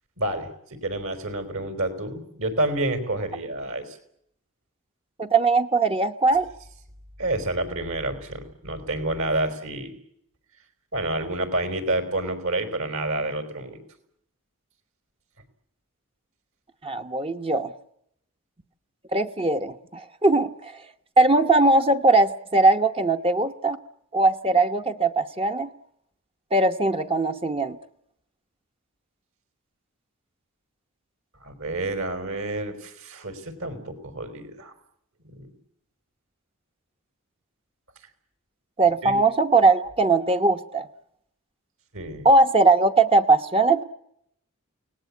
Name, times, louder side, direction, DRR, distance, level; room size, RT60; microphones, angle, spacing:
voice 1, 0.2-4.0 7.2-10.0 10.9-13.8 31.4-34.7 35.2-35.5 39.0-39.2 41.9-42.3, right 2 dB, 65° right, 9 dB, 4.6 m, -29 dB
voice 2, 5.2-6.5 16.8-17.7 19.1-20.8 21.2-23.8 24.1-25.7 26.5-27.8 38.8-40.9 42.2-43.8, right 3 dB, 25° right, 6 dB, 0.9 m, -20 dB
29.0 x 19.0 x 8.6 m, 0.74 s
head